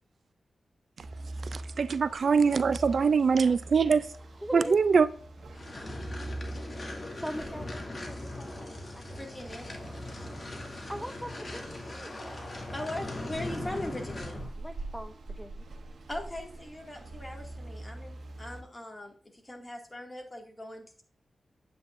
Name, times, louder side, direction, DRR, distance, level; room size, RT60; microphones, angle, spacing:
sound 1, 1.0-18.6, right 2 dB, 90° right, 1.7 m, -44 dB
voice 1, 1.5-4.1 4.5-5.1, right 5 dB, 65° right, 0.4 m, -23 dB
voice 2, 4.4-4.8 7.1-8.6 8.9-9.5 10.9-12.2 14.6-15.6, equal, ahead, 0.6 m, -41 dB
sound 2, 5.5-14.5, left 2 dB, 40° left, 2.4 m, -40 dB
voice 3, 9.2-9.7 12.7-14.4 16.1-21.0, left 1 dB, 20° left, 2.2 m, -40 dB
9.5 x 8.3 x 2.6 m
wide cardioid pair, 85°, 0 cm